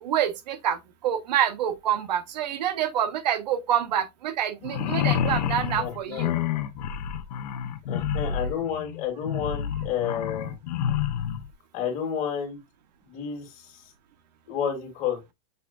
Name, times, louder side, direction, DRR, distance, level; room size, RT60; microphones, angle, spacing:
voice 1, 0.0-6.3, right 10 dB, 80° right, 0.8 m, -27 dB
sound 1, 4.6-11.4, left 9 dB, 75° left, 1.0 m, -28 dB
voice 2, 5.8-6.2 7.9-10.5 11.7-12.6 13.0-13.7 14.5-15.2, left 8 dB, 35° left, 2.3 m, -30 dB
6.6 x 3.5 x 2.3 m
supercardioid pair, 155°, 21 cm